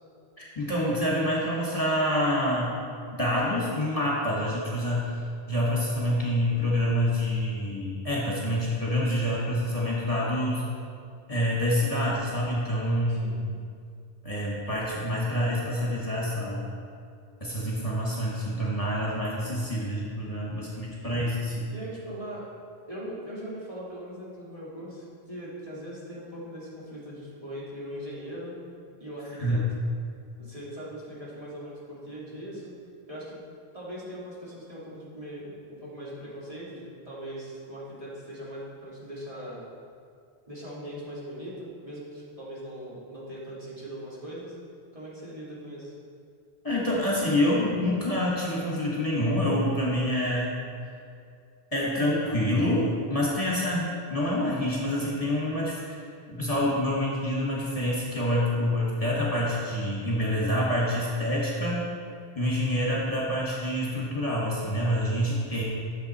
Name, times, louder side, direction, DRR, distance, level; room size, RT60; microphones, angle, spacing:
voice 1, 0.4-2.7 3.1-5.0 5.5-10.6 11.3-13.5 14.2-16.6 17.4-21.7 29.4-29.6 46.6-50.5 50.8-50.9 51.7-56.0 56.3-61.9 62.3-65.6, equal, 35° left, -6 dB, 1.6 m, -27 dB
voice 2, 13.1-13.4 20.2-20.5 21.7-22.5 22.9-28.6 29.0-29.6 30.4-32.7 33.1-33.4 33.7-35.4 35.7-39.6 40.5-44.6 44.9-45.9, equal, 30° right, -9 dB, 2.3 m, -40 dB
10.0 x 6.8 x 4.2 m, 2.3 s
omnidirectional pair, 1.1 m